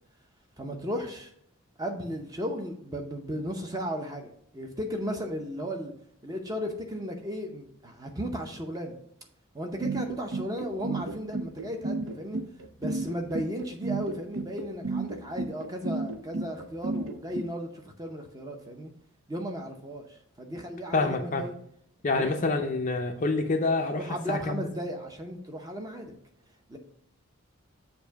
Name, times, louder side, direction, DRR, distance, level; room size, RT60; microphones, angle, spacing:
voice 1, 0.6-1.3 1.8-5.9 6.2-9.0 9.5-12.4 12.8-18.9 19.3-21.5 22.1-22.3 24.0-26.1 26.7-26.8, equal, 15° right, 3 dB, 0.7 m, -35 dB
sound 1, 9.8-17.4, right 3 dB, 60° right, 0.5 m, -32 dB
voice 2, 20.9-21.4 22.0-24.0 24.3-24.7, left 3 dB, 35° left, 5 dB, 0.5 m, -27 dB
6.9 x 2.6 x 5.7 m, 0.71 s
head